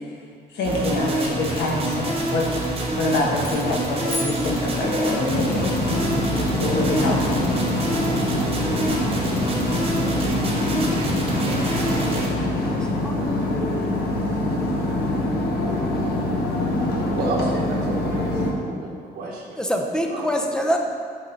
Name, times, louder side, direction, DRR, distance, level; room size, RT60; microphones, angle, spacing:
voice 1, 0.5-2.5 3.0-5.8 6.6-7.4, left 2 dB, 90° left, -2 dB, 1.5 m, -25 dB
sound 1, 0.6-12.3, right 2 dB, 35° right, 1.3 m, -27 dB
sound 2, 3.4-5.3, left 2 dB, 20° left, 1.0 m, -35 dB
sound 3, 5.3-18.5, left 1 dB, 70° left, 1.3 m, -24 dB
voice 2, 12.6-13.3 19.6-20.8, equal, 5° left, 2 dB, 0.6 m, -25 dB
voice 3, 17.1-19.6 20.1-20.3, right 3 dB, 60° right, -5 dB, 1.4 m, -31 dB
9.5 x 4.3 x 3.9 m, 2.2 s
cardioid pair, 150°, 17 cm